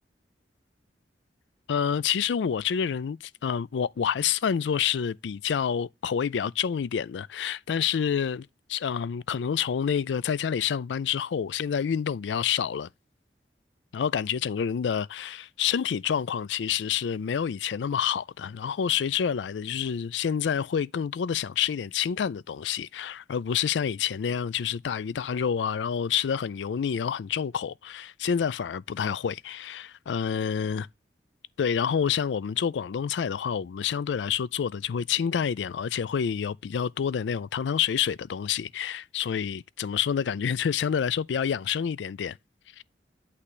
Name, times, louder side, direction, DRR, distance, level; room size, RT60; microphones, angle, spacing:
voice 1, 1.7-12.9 13.9-30.9 31.6-42.4 42.8-42.9, left 7 dB, 85° left, 0.4 m, -28 dB
8.4 x 3.3 x 4.9 m
head